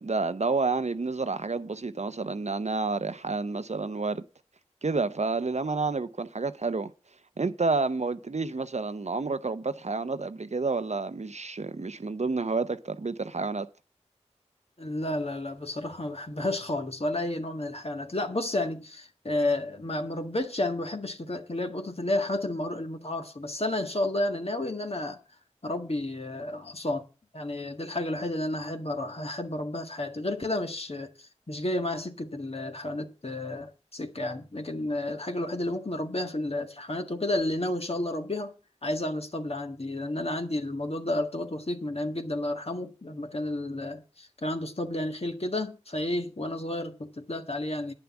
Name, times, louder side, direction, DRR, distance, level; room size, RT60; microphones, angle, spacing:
voice 1, 0.0-4.2 4.8-6.9 7.4-13.7, right 3 dB, 65° right, 0.7 m, -29 dB
voice 2, 14.8-25.2 25.6-27.1 27.3-38.5 38.8-47.9, left 1 dB, 55° left, 1.7 m, -31 dB
10.0 x 6.9 x 7.1 m
wide cardioid pair, 45°, 12 cm